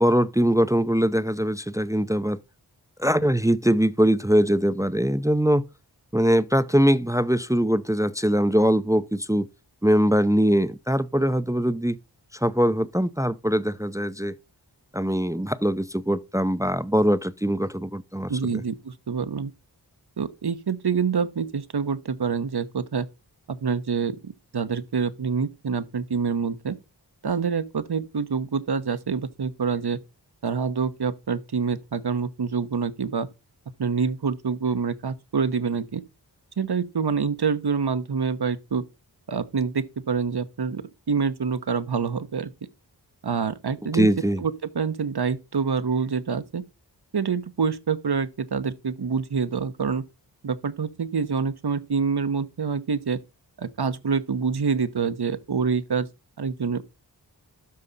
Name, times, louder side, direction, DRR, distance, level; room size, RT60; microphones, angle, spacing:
voice 1, 0.0-2.4 3.0-5.6 6.1-9.5 9.8-12.0 12.3-14.4 14.9-18.6 43.9-44.4, equal, 10° right, 0.5 m, -22 dB
voice 2, 18.3-19.5 20.2-23.1 23.5-26.8 27.2-30.0 30.4-33.3 33.8-36.0 36.6-38.8 39.3-42.5 43.2-44.1 44.4-46.6 47.1-50.0 50.4-53.2 53.6-56.1 56.4-56.8, right 5 dB, 65° right, 1.0 m, -26 dB
12.5 x 4.9 x 4.0 m
wide cardioid pair, 50°, 42 cm